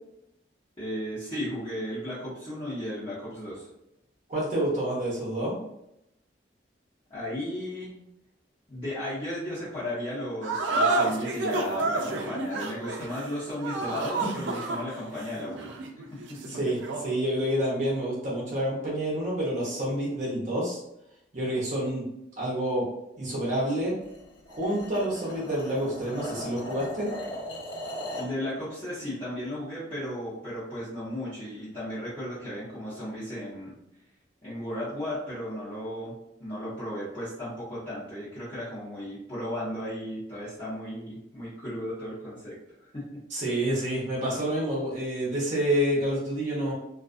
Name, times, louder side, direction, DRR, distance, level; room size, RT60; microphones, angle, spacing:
voice 1, 0.8-3.7 7.1-7.9 8.7-15.7 16.1-16.5 28.1-33.7 34.4-36.1 36.4-42.5 42.9-43.2, left 1 dB, 30° left, -13 dB, 0.9 m, -35 dB
voice 2, 4.3-5.6 14.3-14.4 16.5-20.8 21.3-22.0 22.4-22.9 23.2-23.9 24.5-27.1 43.3-46.7, right 1 dB, 40° right, -6 dB, 0.7 m, -28 dB
sound 1, 10.4-17.1, right 3 dB, 80° right, 0.4 m, -30 dB
sound 2, 24.0-28.4, left 1 dB, 80° left, 1.1 m, -38 dB
2.4 x 2.3 x 2.4 m, 0.83 s
head